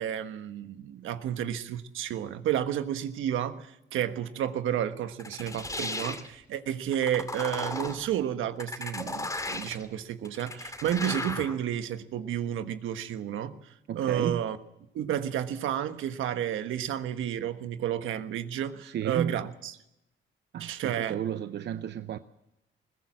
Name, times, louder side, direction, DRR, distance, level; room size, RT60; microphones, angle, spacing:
voice 1, 0.0-13.5 13.9-14.6 14.9-19.8 20.6-21.2, right 10 dB, 80° right, 1.3 m, -31 dB
sound 1, 5.2-6.3 6.9-8.1 8.6-9.9 10.2-11.6, left 2 dB, 15° left, 2.5 m, -35 dB
voice 2, 13.9-14.4 18.8-19.4 20.5-22.2, right 9 dB, 60° right, 0.8 m, -33 dB
21.0 x 16.5 x 7.5 m
cardioid pair, 90°, 20 cm